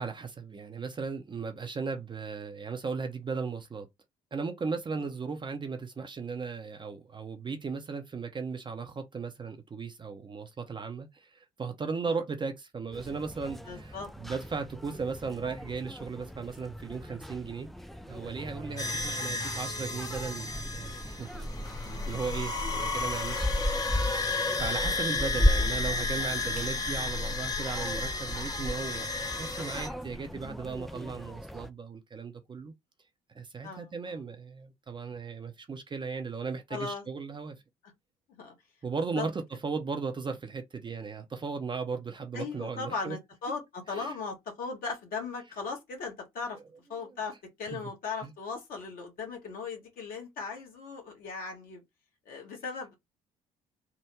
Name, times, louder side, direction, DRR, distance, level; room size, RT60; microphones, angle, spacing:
voice 1, 0.0-3.9 4.3-17.7 18.1-23.7 24.0-32.7 33.4-37.6 38.8-43.2 43.9-44.2 47.7-47.8 48.2-48.3, right 5 dB, 25° right, 0.6 m, -36 dB
sound 1, 12.9-31.7, left 1 dB, ahead, 0.3 m, -35 dB
voice 2, 13.7-14.1 18.8-19.0 21.9-22.2 33.6-34.2 36.7-37.0 38.4-38.5 39.1-39.3 42.3-46.6 46.9-51.8 52.3-52.9, left 4 dB, 50° left, 1.4 m, -38 dB
sound 2, 18.8-29.9, left 3 dB, 20° left, 0.8 m, -33 dB
3.5 x 2.1 x 3.0 m
figure-of-eight pair, 50°, 18 cm